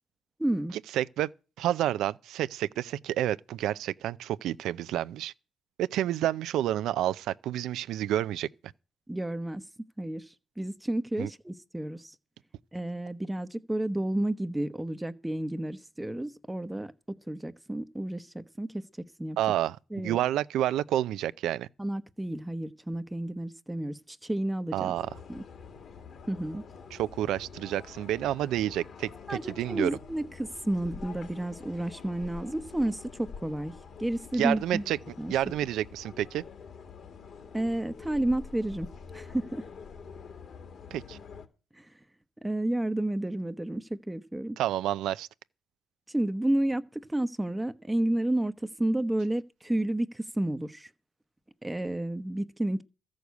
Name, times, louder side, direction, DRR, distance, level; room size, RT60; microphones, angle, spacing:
voice 1, 0.4-0.7 9.1-9.6 10.0-12.1 12.7-16.9 17.3-18.8 19.2-19.4 19.9-20.2 21.8-24.9 25.3-25.4 26.3-26.6 29.3-33.7 34.0-34.8 35.2-35.3 37.5-38.9 39.1-39.6 41.7-41.9 42.4-44.6 46.1-50.9 51.6-52.8, right 1 dB, 10° right, 0.9 m, -31 dB
voice 2, 0.9-1.3 1.6-5.3 5.8-8.5 11.2-11.3 19.4-21.7 24.7-25.1 26.9-29.9 34.4-35.0 35.3-36.4 40.9-41.2 44.6-45.3, right 12 dB, 85° right, 0.5 m, -29 dB
sound 1, 24.9-41.5, left 6 dB, 60° left, 2.4 m, -47 dB
14.0 x 6.4 x 8.2 m
cardioid pair, 90°, 0 cm